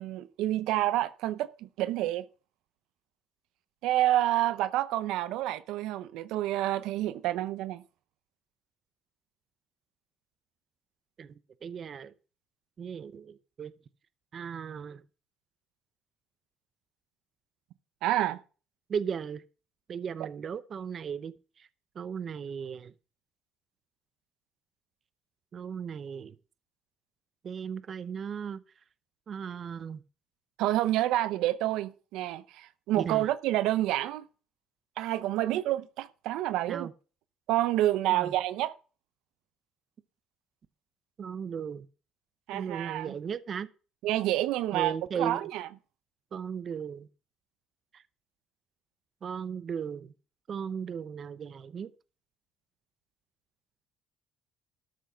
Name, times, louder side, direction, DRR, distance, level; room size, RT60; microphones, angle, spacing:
voice 1, 0.0-2.3 3.8-7.8 18.0-18.4 30.6-34.2 35.0-36.9 37.5-38.7 42.5-43.1 44.0-45.7, right 14 dB, 80° right, 0.7 m, -28 dB
voice 2, 11.6-12.1 12.8-13.7 14.3-15.0 18.9-19.4 19.9-21.3 21.6-21.7 22.0-22.9 25.5-26.3 27.4-28.6 29.3-30.0 33.0-33.3 36.7-36.9 38.1-38.3 41.2-41.9 42.5-43.7 44.7-45.5 46.3-47.1 47.9-48.0 49.2-50.1 50.5-51.9, right 7 dB, 40° right, 0.7 m, -36 dB
12.5 x 6.4 x 5.7 m
cardioid pair, 120°, 0 cm